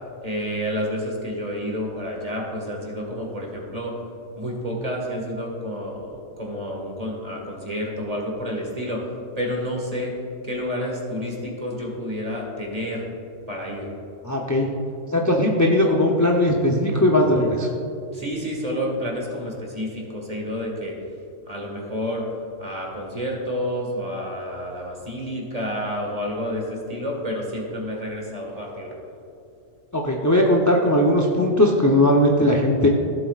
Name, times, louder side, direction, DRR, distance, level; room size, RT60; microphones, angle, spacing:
voice 1, 0.2-4.0 4.4-9.1 9.4-10.2 10.4-13.1 13.5-13.9 18.1-21.0 21.5-22.3 22.6-28.9, equal, 30° right, -1 dB, 1.8 m, -29 dB
voice 2, 14.2-14.7 15.1-17.7 29.9-32.9, left 1 dB, 20° left, -2 dB, 0.5 m, -19 dB
15.5 x 7.7 x 2.4 m, 2.6 s
omnidirectional pair, 1.3 m